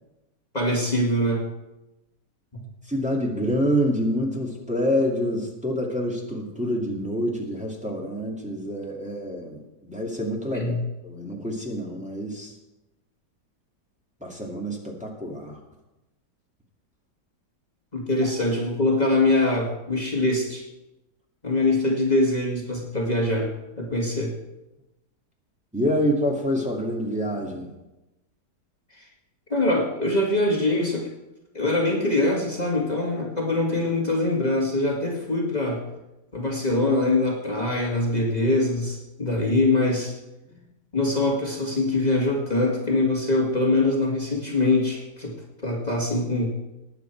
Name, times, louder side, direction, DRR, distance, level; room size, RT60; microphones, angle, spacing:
voice 1, 0.5-1.5 2.5-2.7 10.5-10.9 17.9-20.6 21.4-23.5 23.8-24.3 28.9-29.1 29.5-31.1 31.5-35.8 36.3-40.1 40.9-45.4 45.6-46.6, left 2 dB, 25° left, -2 dB, 2.1 m, -23 dB
voice 2, 2.9-12.5 14.2-15.6 25.7-27.7, equal, 5° right, -1 dB, 2.2 m, -27 dB
19.5 x 8.3 x 4.6 m, 0.98 s
omnidirectional pair, 1.9 m